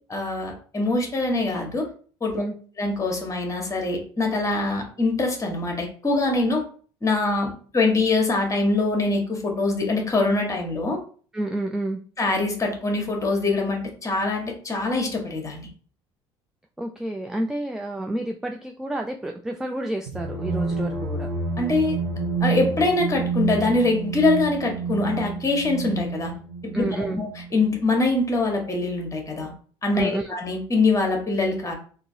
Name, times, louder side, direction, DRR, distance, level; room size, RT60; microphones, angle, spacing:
voice 1, 0.1-1.9 2.2-2.4 2.8-6.6 7.0-11.0 12.2-15.7 21.6-22.0 22.4-26.3 26.6-29.5 29.8-31.7, left 3 dB, 20° left, 2 dB, 1.3 m, -24 dB
voice 2, 11.3-12.0 16.8-21.3 26.7-27.2 29.9-30.3, right 1 dB, 5° right, 3 dB, 0.3 m, -29 dB
sound 1, 20.1-27.7, right 4 dB, 70° right, 1.0 m, -29 dB
3.7 x 2.7 x 2.7 m, 0.43 s
figure-of-eight pair, 60°, 15 cm